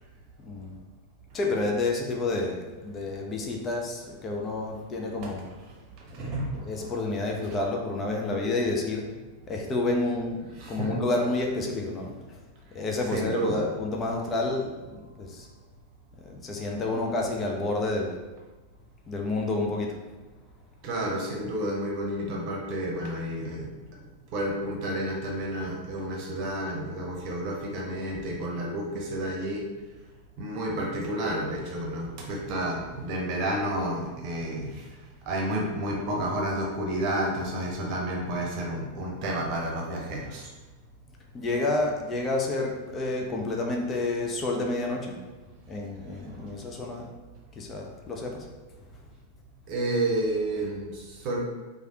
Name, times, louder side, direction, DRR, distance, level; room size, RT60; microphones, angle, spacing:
voice 1, 0.4-0.8 1.3-5.5 6.2-9.0 9.5-10.4 10.7-12.1 12.7-14.8 15.2-15.5 16.2-18.1 19.1-20.0 41.3-45.2 45.7-47.1 47.6-48.4, left 2 dB, 30° left, 0 dB, 0.5 m, -29 dB
voice 2, 5.7-6.9 10.6-11.0 13.1-13.7 20.8-23.7 24.3-29.6 30.4-34.9 35.3-40.5 46.2-46.5 49.7-51.4, right 1 dB, 50° right, -1 dB, 0.7 m, -31 dB
3.2 x 2.3 x 2.8 m, 1.2 s
figure-of-eight pair, 95°, 0 cm